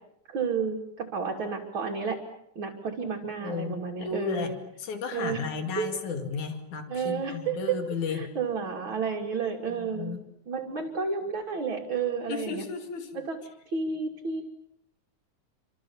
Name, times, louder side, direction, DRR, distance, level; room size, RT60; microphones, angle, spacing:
voice 1, 0.3-2.2 2.6-4.6 5.1-5.4 5.8-5.9 6.9-7.8 8.1-10.1 10.5-12.6 13.1-13.4 13.7-14.4, right 5 dB, 45° right, 0 dB, 3.3 m, -31 dB
voice 2, 3.4-4.5 4.8-8.2 9.7-10.2 12.3-13.2, left 5 dB, 85° left, 6 dB, 3.9 m, -34 dB
30.0 x 26.0 x 7.2 m, 0.80 s
omnidirectional pair, 3.3 m